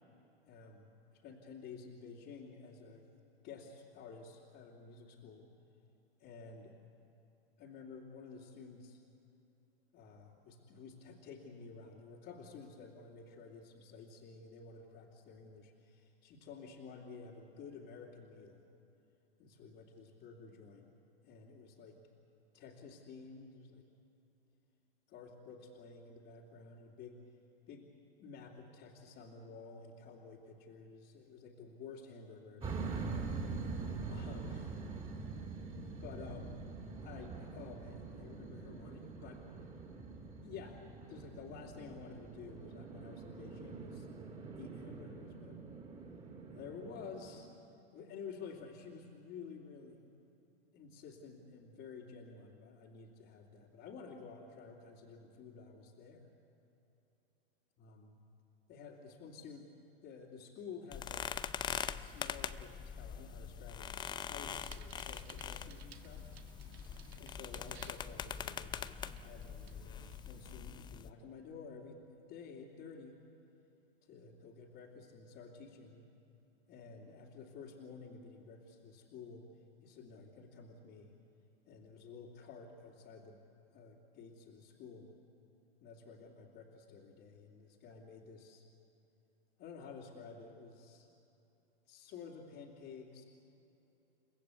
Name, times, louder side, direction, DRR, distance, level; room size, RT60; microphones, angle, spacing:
voice 1, 0.5-3.0 3.4-5.5 6.2-6.7 7.6-9.0 9.9-18.6 19.4-20.9 21.2-22.0 22.5-23.8 25.1-27.2 27.7-27.9 28.2-34.6 35.9-36.6 37.0-39.4 40.4-40.8 41.1-44.1 44.6-45.6 46.5-47.5 47.9-50.1 50.7-56.3 57.8-58.2 58.7-59.7 60.0-61.3 61.7-66.3 67.2-72.0 72.3-73.1 74.1-76.0 76.7-79.5 79.8-81.1 81.7-83.4 83.7-85.1 85.8-88.6 89.6-91.1 91.9-93.2, left 5 dB, 40° left, -5 dB, 2.8 m, -52 dB
sound 1, 32.6-47.4, right 4 dB, 20° right, 3.4 m, -44 dB
sound 2, 60.9-71.1, left 8 dB, 15° left, 0.5 m, -43 dB
Bicycle, 64.4-70.5, right 8 dB, 80° right, 1.6 m, -60 dB
29.5 x 15.0 x 8.3 m, 2.9 s
hypercardioid pair, 115°, 31 cm